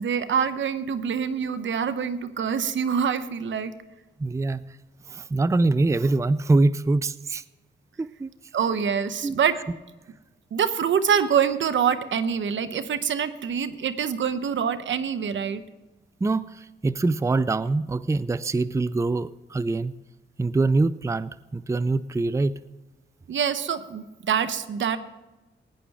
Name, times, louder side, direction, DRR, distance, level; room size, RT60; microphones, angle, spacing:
voice 1, 0.0-3.7 8.5-9.6 10.5-15.6 23.3-25.0, right 7 dB, 75° right, 12 dB, 0.9 m, -25 dB
voice 2, 4.2-4.7 5.1-7.4 8.0-8.3 9.2-9.4 16.2-19.9 20.4-22.6, right 3 dB, 15° right, 16 dB, 0.4 m, -24 dB
17.0 x 10.0 x 3.5 m, 1.1 s
cardioid pair, 70°, 20 cm